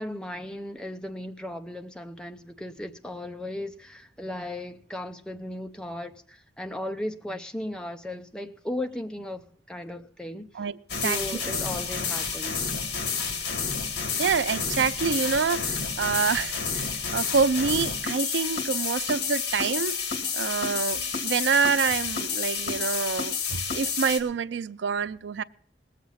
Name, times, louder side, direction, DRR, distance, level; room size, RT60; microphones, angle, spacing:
voice 1, 0.0-10.5 11.0-12.7, left 1 dB, 5° left, 0.6 m, -36 dB
voice 2, 10.5-11.2 14.2-20.0 20.3-25.4, right 5 dB, 85° right, 0.4 m, -27 dB
sound 1, 10.9-24.2, left 6 dB, 65° left, 2.1 m, -30 dB
19.5 x 7.4 x 5.7 m
head